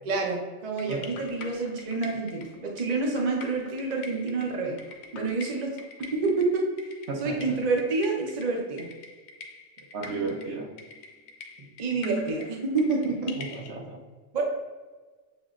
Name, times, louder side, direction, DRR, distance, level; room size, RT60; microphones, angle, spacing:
voice 1, 0.0-4.8 5.1-6.7 7.2-8.9 11.8-13.3 14.3-14.4, right 3 dB, 40° right, 0 dB, 0.7 m, -28 dB
sound 1, 0.8-13.7, left 3 dB, 90° left, 1.0 m, -44 dB
voice 2, 7.1-7.5 9.9-10.7 13.4-14.0, right 3 dB, 60° right, 0 dB, 1.0 m, -34 dB
7.1 x 3.0 x 2.5 m, 1.4 s
omnidirectional pair, 1.4 m